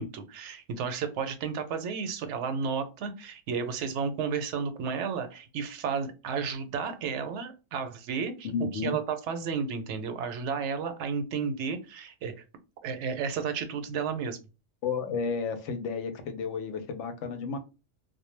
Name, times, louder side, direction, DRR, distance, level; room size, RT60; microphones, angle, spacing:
voice 1, 0.0-12.4 12.8-14.4, right 6 dB, 75° right, 0.9 m, -32 dB
voice 2, 8.4-9.0 14.8-17.6, left 5 dB, 85° left, 0.9 m, -32 dB
2.2 x 2.1 x 3.1 m
omnidirectional pair, 1.2 m